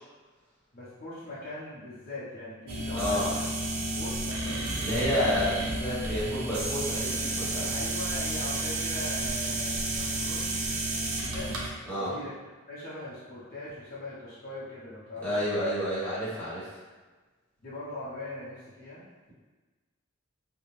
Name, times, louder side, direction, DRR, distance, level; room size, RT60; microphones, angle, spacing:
voice 1, 0.7-3.4 3.9-4.6 7.7-11.6 12.0-12.3 12.7-15.3 17.6-19.0, left 1 dB, 45° left, -9 dB, 0.6 m, -41 dB
sound 1, 2.7-11.7, right 2 dB, 85° right, 0.5 m, -31 dB
voice 2, 2.9-3.3 4.8-7.7 11.9-12.1 15.2-16.7, equal, 5° left, -11 dB, 1.0 m, -30 dB
2.4 x 2.0 x 3.0 m, 1.3 s
head